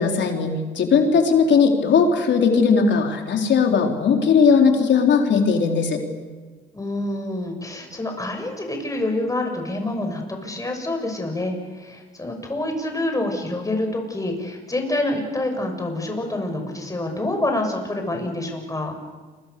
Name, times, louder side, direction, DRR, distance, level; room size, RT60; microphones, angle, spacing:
voice 1, 0.0-6.0, left 5 dB, 65° left, 3 dB, 4.1 m, -18 dB
voice 2, 6.7-19.0, left 1 dB, 15° left, 4 dB, 6.8 m, -27 dB
28.5 x 23.5 x 6.9 m, 1.3 s
cardioid pair, 90°, 20 cm